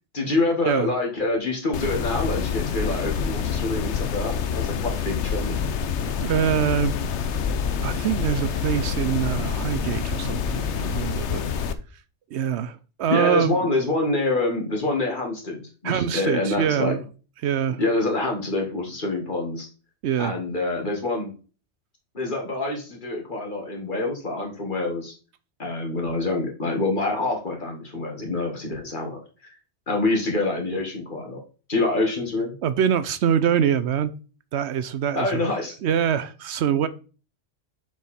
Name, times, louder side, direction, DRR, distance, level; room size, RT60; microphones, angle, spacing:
voice 1, 0.1-5.6 13.1-17.0 17.8-19.7 20.2-21.3 22.1-25.1 25.6-29.2 29.9-31.4 31.7-32.5 35.1-35.7, left 2 dB, 45° left, 2.0 m, -26 dB
sound 1, 1.7-11.7, left 6 dB, 75° left, 1.0 m, -27 dB
voice 2, 6.1-7.0 7.8-11.4 12.3-13.6 15.8-17.0 17.4-17.8 20.0-20.3 32.6-34.1 34.5-35.4 35.8-36.9, right 9 dB, 70° right, 0.8 m, -24 dB
6.9 x 4.9 x 4.3 m
omnidirectional pair, 1.2 m